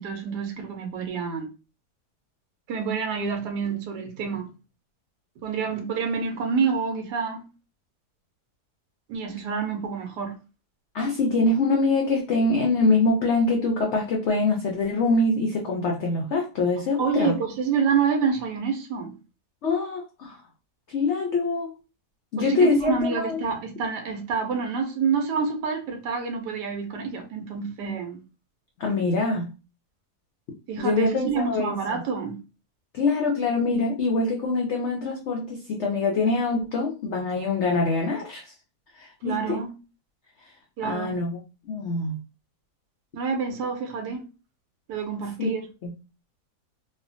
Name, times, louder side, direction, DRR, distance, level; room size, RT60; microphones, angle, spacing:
voice 1, 0.0-1.5 2.7-4.5 5.4-7.5 9.1-10.4 17.0-19.2 22.4-28.2 30.7-32.4 39.2-39.7 40.8-41.2 43.1-44.3 44.9-45.7, right 5 dB, 90° right, 1.2 m, -27 dB
voice 2, 10.9-17.4 19.6-20.4 20.9-21.7 22.3-23.4 28.8-29.5 30.8-32.0 32.9-38.5 38.9-39.6 40.8-41.4 41.7-42.2 45.4-45.5 45.8-45.9, left 3 dB, 80° left, 0.6 m, -24 dB
3.2 x 2.1 x 2.5 m
omnidirectional pair, 1.7 m